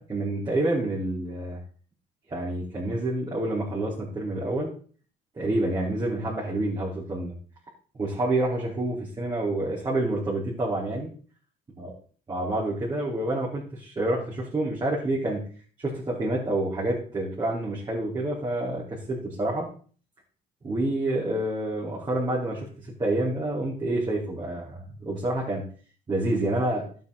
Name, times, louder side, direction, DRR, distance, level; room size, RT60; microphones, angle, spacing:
voice 1, 0.1-1.6 2.3-4.7 5.3-7.3 7.9-11.1 11.8-11.9 12.3-15.4 15.8-19.7 20.6-22.7 23.0-25.6 26.1-26.8, right 1 dB, 25° right, -8 dB, 4.8 m, -28 dB
12.0 x 9.3 x 4.3 m, 0.43 s
cardioid pair, 110°, 17 cm